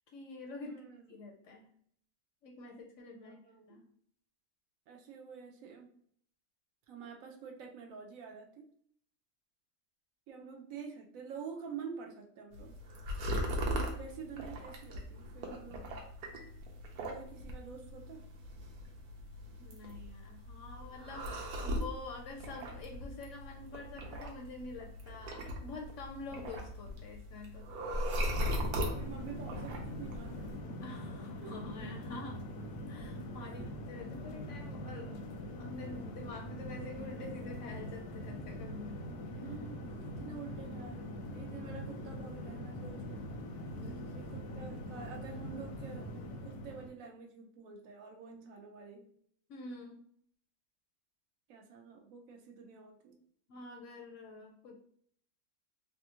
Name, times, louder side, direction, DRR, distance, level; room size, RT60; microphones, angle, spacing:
voice 1, 0.1-0.8 1.1-1.7 2.4-3.4 3.7-3.8 19.6-27.7 30.8-32.4 32.9-39.0 43.8-44.2 49.5-50.0 53.5-54.8, left 3 dB, 70° left, 1 dB, 0.8 m, -47 dB
voice 2, 0.6-1.1 3.1-3.8 4.9-6.0 6.9-8.7 10.3-12.8 14.0-15.9 17.1-18.3 28.9-30.7 31.4-31.5 33.5-33.7 39.4-43.3 44.1-46.1 46.4-49.1 51.5-53.2, right 6 dB, 70° right, 2 dB, 0.9 m, -48 dB
sound 1, 12.5-30.6, equal, 90° right, 1.2 m, -39 dB
sound 2, 28.3-46.9, equal, 85° left, 1.1 m, -43 dB
3.4 x 2.4 x 2.8 m, 0.63 s
omnidirectional pair, 1.6 m